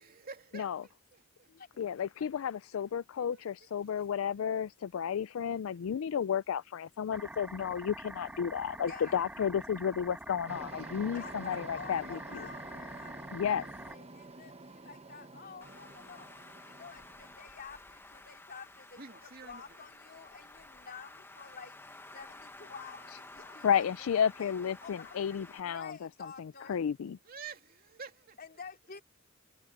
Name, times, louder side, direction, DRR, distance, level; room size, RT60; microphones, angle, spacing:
voice 1, 0.0-1.5 3.2-4.1 9.0-9.2 10.7-11.0 18.9-19.8 27.2-28.4, right 5 dB, 45° right, 2.8 m, -50 dB
voice 2, 1.8-12.5 13.3-13.6 23.4-26.0 26.4-27.2, left 8 dB, 90° left, 0.4 m, -32 dB
sound 1, 7.1-13.9, right 1 dB, 5° right, 1.4 m, -46 dB
voice 3, 8.8-9.2 11.1-13.1 13.5-16.3 16.6-21.8 22.1-24.5 24.8-26.8 28.4-29.0, left 5 dB, 50° left, 3.7 m, -49 dB
sound 2, 10.5-17.4, right 2 dB, 30° right, 1.2 m, -49 dB
Traffic noise roadway noise, 15.6-25.6, left 2 dB, 10° left, 1.1 m, -52 dB
head